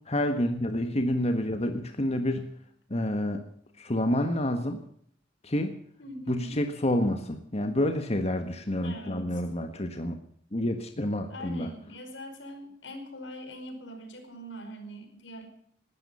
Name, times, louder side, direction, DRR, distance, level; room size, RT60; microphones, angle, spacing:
voice 1, 0.1-2.4 2.9-3.5 3.8-4.8 5.4-5.7 6.3-10.2 10.5-11.7, left 1 dB, 35° left, 6 dB, 1.6 m, -28 dB
voice 2, 6.0-6.6 8.8-9.4 11.3-15.5, equal, 80° left, 7 dB, 4.9 m, -42 dB
19.5 x 13.0 x 5.6 m, 0.64 s
head